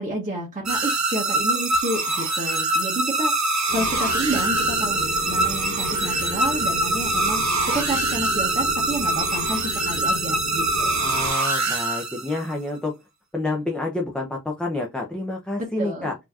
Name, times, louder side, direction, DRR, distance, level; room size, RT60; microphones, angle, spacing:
voice 1, 0.0-3.3 3.7-7.4 7.7-11.0 15.6-16.1, right 1 dB, 25° right, -3 dB, 1.3 m, -30 dB
sound 1, 0.7-12.5, right 2 dB, 55° right, 0.9 m, -24 dB
sound 2, 3.7-11.3, left 3 dB, 80° left, 1.2 m, -35 dB
Wind instrument woodwind instrument, 3.7-8.1, right 7 dB, 35° left, 1.8 m, -45 dB
voice 2, 11.0-12.9 13.3-16.2, left 2 dB, 5° left, -1 dB, 0.7 m, -28 dB
4.2 x 2.9 x 2.4 m, 0.23 s
wide cardioid pair, 75°, 33 cm